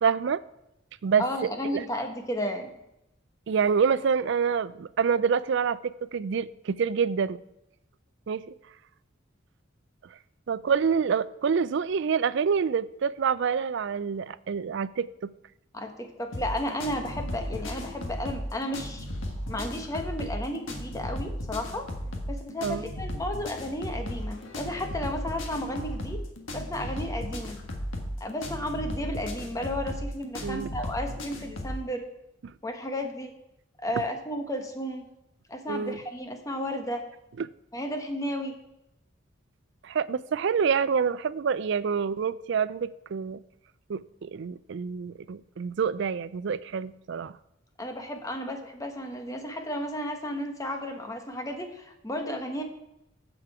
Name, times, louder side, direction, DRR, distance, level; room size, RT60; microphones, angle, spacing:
voice 1, 0.0-0.4 1.0-1.2 1.7-1.9 3.5-5.8 6.1-7.4 8.3-8.4 10.5-15.3 22.6-22.9 30.4-30.7 35.7-36.0 37.4-37.5 39.8-43.4 43.9-47.3, right 6 dB, 65° right, 17 dB, 0.4 m, -27 dB
voice 2, 1.2-2.7 15.7-19.1 19.5-21.9 22.3-26.2 26.5-27.6 28.2-32.1 32.6-33.3 33.8-35.1 35.5-37.1 37.7-38.6 47.8-52.6, left 1 dB, 15° left, 4 dB, 1.1 m, -33 dB
sound 1, 16.3-31.8, equal, 80° left, 1.7 m, -35 dB
15.0 x 5.1 x 4.8 m, 0.85 s
head